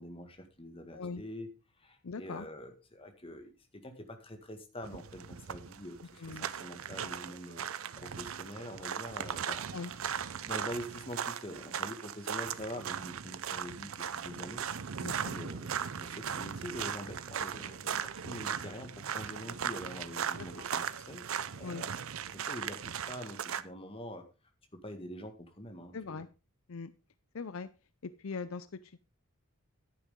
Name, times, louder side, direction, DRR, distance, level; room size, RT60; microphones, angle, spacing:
voice 1, 0.0-1.5 1.8-9.6 9.9-10.1 10.4-14.6 15.2-21.2 21.6-22.0 22.3-24.2 24.7-26.2, equal, 25° left, 5 dB, 1.8 m, -45 dB
voice 2, 2.0-2.5 6.2-6.5 9.7-9.9 15.0-15.4 20.6-20.7 21.6-21.9 25.9-26.3 26.7-26.9 27.3-27.7 28.0-29.0, left 4 dB, 65° left, 14 dB, 0.5 m, -41 dB
sound 1, 4.8-23.6, right 8 dB, 65° right, 0.6 m, -38 dB
11.0 x 9.8 x 3.7 m, 0.30 s
head